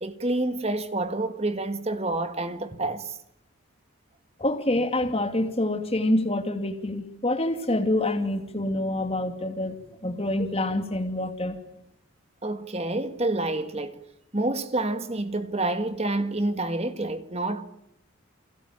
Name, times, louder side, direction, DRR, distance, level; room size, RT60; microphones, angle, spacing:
voice 1, 0.0-3.2 12.4-14.0 14.3-17.6, right 2 dB, 30° right, 1.8 m, -28 dB
voice 2, 4.4-9.8 10.0-11.6, left 1 dB, 25° left, 2.6 m, -26 dB
29.5 x 22.0 x 8.9 m
head